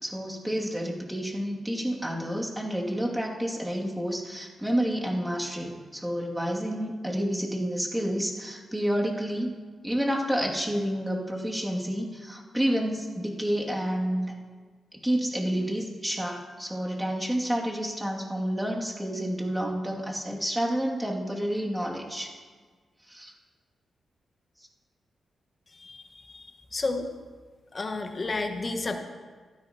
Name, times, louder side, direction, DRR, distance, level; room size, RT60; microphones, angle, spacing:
voice 1, 0.0-9.5 9.8-14.3 15.0-22.4 23.1-23.3, equal, 10° right, -2 dB, 2.3 m, -29 dB
voice 2, 25.8-27.1 27.7-29.0, left 3 dB, 45° left, 5 dB, 1.3 m, -32 dB
16.0 x 12.5 x 2.9 m, 1.5 s
supercardioid pair, 50°, 0 cm